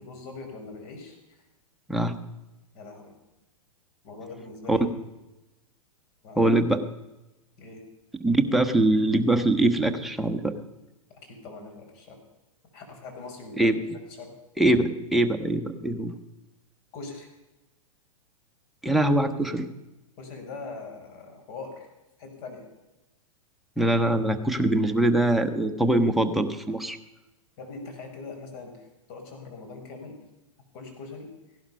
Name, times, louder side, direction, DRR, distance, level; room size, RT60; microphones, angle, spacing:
voice 1, 0.0-1.4 2.7-3.1 4.0-4.9 6.2-6.5 7.6-7.8 11.2-12.2 12.7-13.7 14.2-14.3 16.9-17.3 20.2-21.9 22.2-22.7 27.6-30.2 30.7-31.3, left 3 dB, 45° left, 3 dB, 5.0 m, -42 dB
voice 2, 6.4-6.8 8.2-10.5 13.6-13.8 14.6-16.1 18.8-19.7 23.8-27.0, right 1 dB, ahead, 5 dB, 1.2 m, -23 dB
16.0 x 11.5 x 5.5 m, 1.0 s
hypercardioid pair, 110°, 18 cm